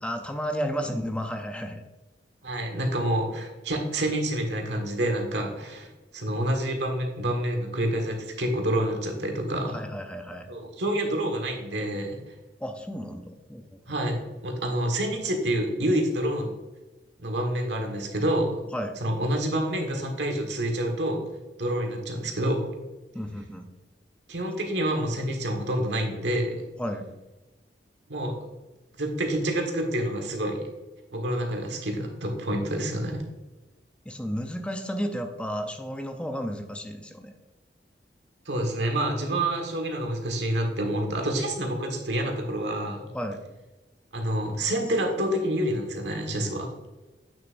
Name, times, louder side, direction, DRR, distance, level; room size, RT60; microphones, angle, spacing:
voice 1, 0.0-1.8 9.7-10.5 12.6-13.6 18.7-19.0 23.1-23.6 26.8-27.0 34.1-37.3 43.1-43.4, equal, 5° left, 6 dB, 0.5 m, -32 dB
voice 2, 2.4-5.9 6.1-9.8 10.5-12.2 13.9-16.5 17.2-18.6 19.0-21.2 21.6-22.8 24.3-26.5 28.1-28.3 29.0-30.7 31.1-33.2 38.4-43.0 44.1-46.7, right 1 dB, 85° right, 2 dB, 1.6 m, -28 dB
8.8 x 6.5 x 2.6 m, 1.1 s
head